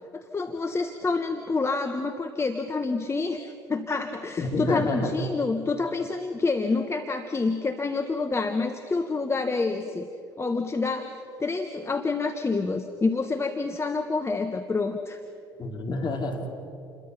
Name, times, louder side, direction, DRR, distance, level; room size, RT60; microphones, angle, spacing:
voice 1, 0.1-10.1 10.4-15.2, left 3 dB, 20° left, 7 dB, 1.3 m, -28 dB
voice 2, 4.4-5.1 15.6-16.5, left 2 dB, 35° left, 2 dB, 3.9 m, -28 dB
29.0 x 22.0 x 5.7 m, 2.6 s
figure-of-eight pair, 60°, 13 cm